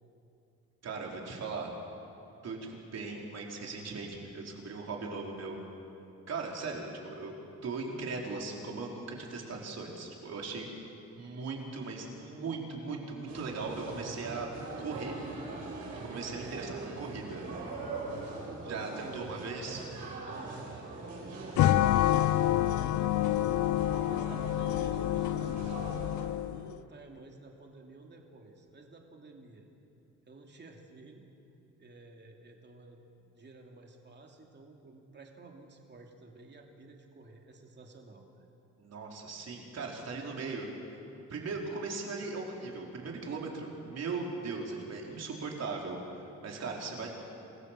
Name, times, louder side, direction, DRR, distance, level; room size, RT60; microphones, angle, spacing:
voice 1, 0.8-1.7 2.4-5.6 6.3-7.3 7.6-10.7 11.1-14.5 14.8-15.1 16.0-16.7 17.0-17.4 18.7-19.8 38.8-40.7 41.3-46.0 46.4-47.1, right 4 dB, 55° right, 0 dB, 4.4 m, -38 dB
sound 1, 13.3-26.3, right 3 dB, 75° right, 6.4 m, -42 dB
voice 2, 16.3-16.8 18.4-19.4 20.3-23.5 23.8-26.0 26.5-29.6 30.3-31.2 31.8-38.5, right 3 dB, 35° right, 1 dB, 2.8 m, -52 dB
sound 2, 21.6-26.7, left 13 dB, 70° left, 0.6 m, -28 dB
27.5 x 16.0 x 7.6 m, 2.8 s
cardioid pair, 90°, 30 cm